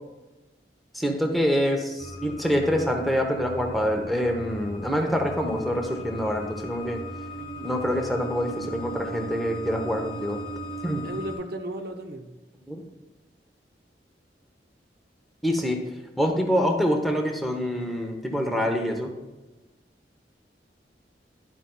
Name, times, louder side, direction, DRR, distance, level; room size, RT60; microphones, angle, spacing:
voice 1, 0.9-7.0 7.6-10.4 10.8-11.0 12.7-12.8 15.4-15.8 16.2-19.1, equal, ahead, 1 dB, 0.8 m, -26 dB
sound 1, 2.0-11.4, equal, 45° left, 2.3 m, -38 dB
voice 2, 7.4-7.7 11.0-12.4, right 1 dB, 60° right, 6 dB, 0.7 m, -35 dB
11.0 x 8.2 x 2.3 m, 1.1 s
head